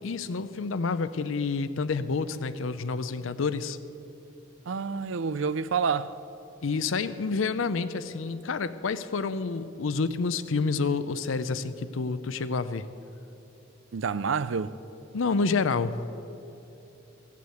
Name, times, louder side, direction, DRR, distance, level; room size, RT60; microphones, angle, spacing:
voice 1, 0.0-3.8 6.6-12.9 15.1-16.0, left 4 dB, 80° left, 0.6 m, -28 dB
voice 2, 4.7-6.2 13.9-14.7, right 5 dB, 75° right, 0.5 m, -28 dB
16.0 x 8.4 x 7.8 m
head